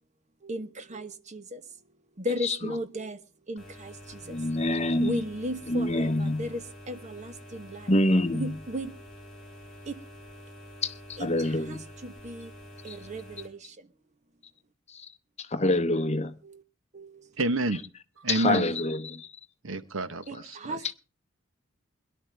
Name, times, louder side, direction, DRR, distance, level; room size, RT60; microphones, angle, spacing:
voice 1, 0.4-1.6 2.2-3.2 3.5-4.4 5.0-7.9 8.3-9.0 9.9-10.0 11.2-12.5 12.8-13.9 16.4-16.6 16.9-17.3 20.3-20.9, equal, 35° right, 1.0 m, -36 dB
sound 1, 3.6-13.5, equal, 5° left, 4.7 m, -48 dB
voice 2, 4.3-5.1 5.7-6.5 7.9-8.5 10.8-11.8 12.9-13.0 14.9-15.1 15.4-16.3 18.3-19.3 20.8-20.9, left 1 dB, 35° left, 1.0 m, -26 dB
voice 3, 17.4-17.8 18.2-18.7 19.6-20.8, right 2 dB, 85° right, 1.1 m, -29 dB
22.0 x 11.5 x 3.4 m
head